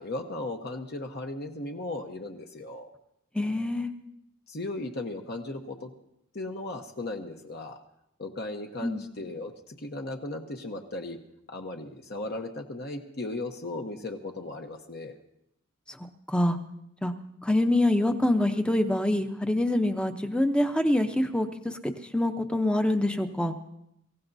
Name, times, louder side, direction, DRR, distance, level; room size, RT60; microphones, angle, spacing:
voice 1, 0.0-2.9 4.5-5.9 6.3-7.8 8.2-11.2 11.5-15.2, left 2 dB, 50° left, 3 dB, 1.0 m, -36 dB
voice 2, 3.3-3.9 8.8-9.0 15.9-16.0 16.3-16.6 17.0-17.1 17.4-23.6, left 1 dB, 5° left, 7 dB, 0.7 m, -25 dB
24.0 x 15.5 x 2.7 m, 0.78 s
head